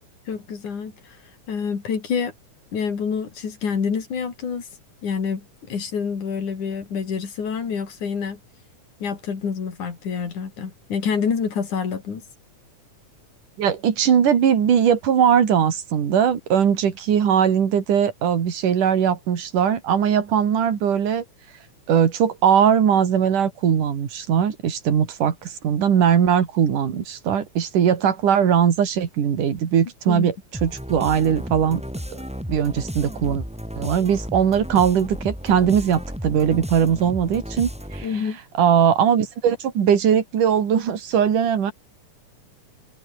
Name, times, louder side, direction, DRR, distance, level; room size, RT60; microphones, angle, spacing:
voice 1, 0.3-1.2 1.5-2.3 2.7-4.7 5.0-8.4 9.0-12.2 30.1-30.3 38.0-38.4, left 6 dB, 70° left, 5.2 m, -27 dB
voice 2, 13.6-21.2 21.9-30.3 30.6-31.8 32.1-32.2 32.5-33.4 33.8-38.1 38.6-41.7, right 8 dB, 80° right, 4.2 m, -20 dB
sound 1, 30.5-38.2, equal, ahead, 5.7 m, -33 dB
omnidirectional pair, 3.6 m